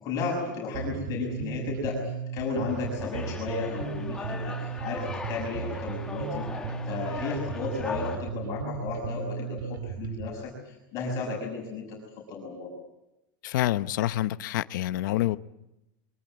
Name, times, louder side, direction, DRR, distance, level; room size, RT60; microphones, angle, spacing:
voice 1, 0.0-2.0 2.3-6.4 6.9-12.7, left 4 dB, 30° left, -1 dB, 6.1 m, -33 dB
Bass guitar, 0.7-10.3, right 6 dB, 70° right, 2.2 m, -35 dB
sound 1, 2.7-8.2, left 4 dB, 5° left, 2.0 m, -39 dB
voice 2, 13.4-15.4, left 14 dB, 65° left, 14 dB, 0.8 m, -27 dB
23.5 x 19.5 x 9.4 m, 0.90 s
supercardioid pair, 170°, 11 cm